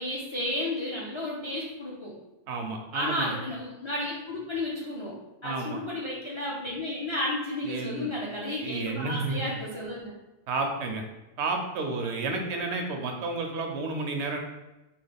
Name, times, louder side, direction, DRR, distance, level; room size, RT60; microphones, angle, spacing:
voice 1, 0.0-2.1 2.9-5.1 5.4-10.1, left 1 dB, 45° left, -5 dB, 0.4 m, -32 dB
voice 2, 2.5-3.4 5.4-5.8 7.6-8.1 8.6-9.4 10.5-11.0 11.4-14.4, right 3 dB, 85° right, 4 dB, 0.9 m, -31 dB
3.0 x 2.2 x 3.4 m, 1.0 s
omnidirectional pair, 1.1 m